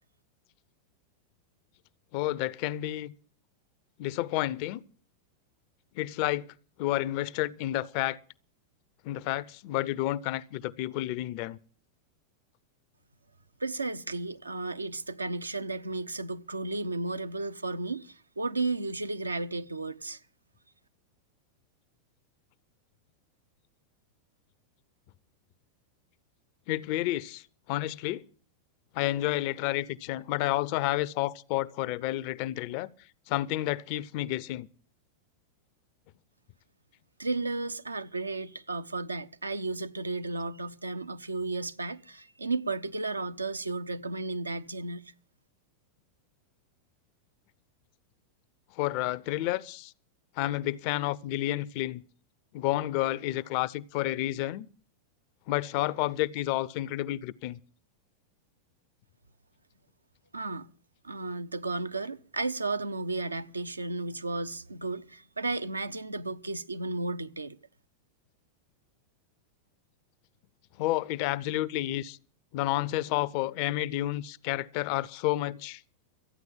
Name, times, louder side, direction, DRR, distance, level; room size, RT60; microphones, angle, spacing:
voice 1, 2.1-3.1 4.0-4.8 5.9-6.5 6.8-8.2 9.0-11.6 26.7-28.2 28.9-32.9 33.3-34.7 48.7-49.9 50.4-52.0 52.5-54.7 55.5-57.6 70.8-72.2 72.5-75.8, left 16 dB, 45° left, 0.5 m, -30 dB
voice 2, 13.6-20.2 37.2-45.1 60.3-60.7 61.0-67.6, right 3 dB, 80° right, 0.7 m, -33 dB
13.5 x 9.4 x 7.2 m
figure-of-eight pair, 90°, 0 cm